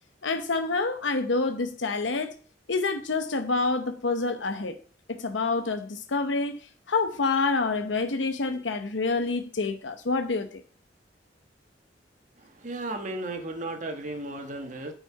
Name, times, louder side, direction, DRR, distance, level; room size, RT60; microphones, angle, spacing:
voice 1, 0.2-2.3 2.7-4.8 5.1-10.6, left 3 dB, 85° left, 0.9 m, -27 dB
voice 2, 12.6-14.9, right 2 dB, 45° right, 1.6 m, -34 dB
9.2 x 5.8 x 5.8 m
head